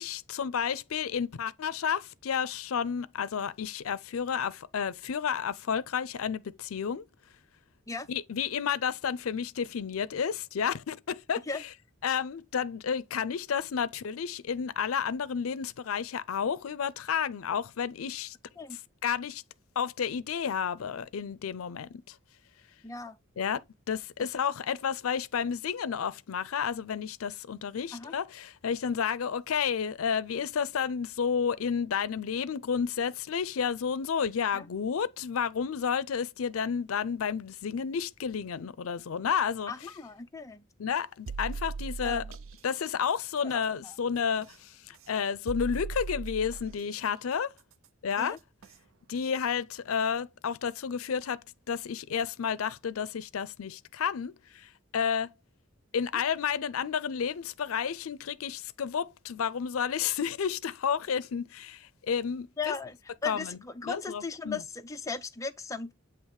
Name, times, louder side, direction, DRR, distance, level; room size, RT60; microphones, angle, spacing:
voice 1, 0.0-7.0 8.1-11.4 12.0-18.4 18.7-19.4 19.8-22.2 23.4-23.6 23.9-39.7 40.8-42.2 42.6-47.5 48.0-48.4 49.1-51.4 51.7-55.3 55.9-62.7 63.3-64.6, left 7 dB, 85° left, 0.5 m, -31 dB
voice 2, 22.8-23.2 24.2-24.3 27.9-28.1 34.5-34.7 39.7-40.6 42.0-42.2 43.4-44.0 48.2-48.4 62.6-63.0 63.2-65.9, left 4 dB, 15° left, 0.5 m, -37 dB
sound 1, 41.3-42.5 44.4-44.5 45.5-46.8 48.6-48.7 49.2-49.3, right 4 dB, 70° right, 0.5 m, -37 dB
8.2 x 2.9 x 4.7 m
head